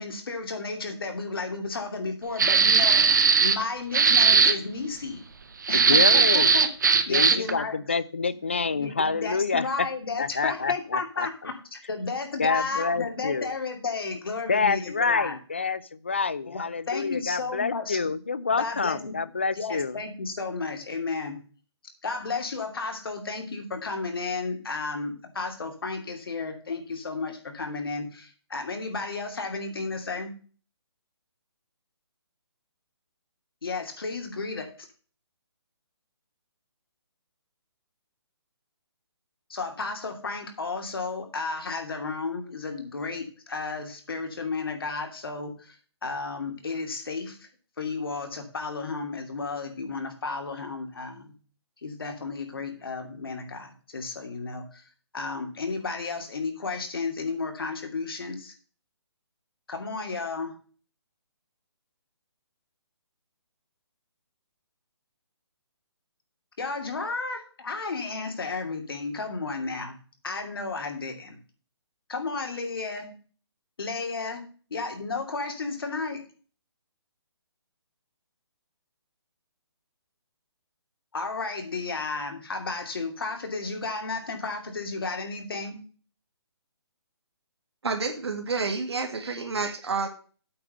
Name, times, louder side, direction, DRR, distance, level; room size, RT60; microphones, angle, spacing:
voice 1, 0.0-5.2 5.7-6.7 7.1-7.8 8.3-15.3 16.5-18.1 18.6-19.1 19.5-21.4 22.0-30.3 33.6-34.7 39.5-47.5 47.8-51.3 51.8-54.9 55.1-58.5 59.7-60.6 66.6-70.0 70.2-71.4 72.1-73.1 73.8-76.2 81.1-85.8, left 4 dB, 55° left, 4 dB, 2.6 m, -33 dB
sound 1, 2.4-3.6 3.9-4.6 5.7-7.5, right 5 dB, 45° right, 0.8 m, -19 dB
voice 2, 5.7-6.5 7.1-9.9 10.2-11.3 12.4-13.5 14.5-20.0, left 4 dB, 25° left, 17 dB, 0.4 m, -27 dB
voice 3, 87.8-90.1, right 4 dB, 70° right, 5 dB, 2.1 m, -29 dB
8.6 x 5.0 x 7.6 m, 0.39 s
hypercardioid pair, 180°, 14 cm